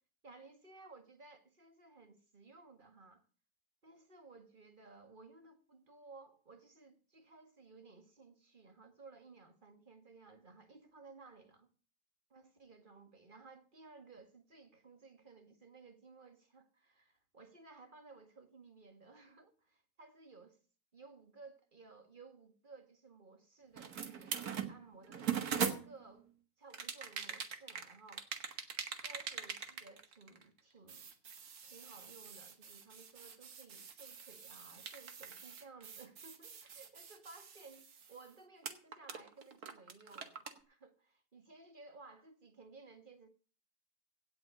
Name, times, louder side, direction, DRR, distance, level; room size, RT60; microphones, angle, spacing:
voice 1, 0.2-3.2 3.8-11.7 12.3-20.6 20.9-25.3 25.6-26.3 26.6-28.3 29.0-43.3, right 3 dB, 35° right, 1.9 m, -58 dB
sound 1, 23.8-26.2 26.7-30.6 30.9-38.3 38.6-40.6, right 7 dB, 85° right, 2.0 m, -42 dB
17.0 x 6.1 x 8.2 m
omnidirectional pair, 1.6 m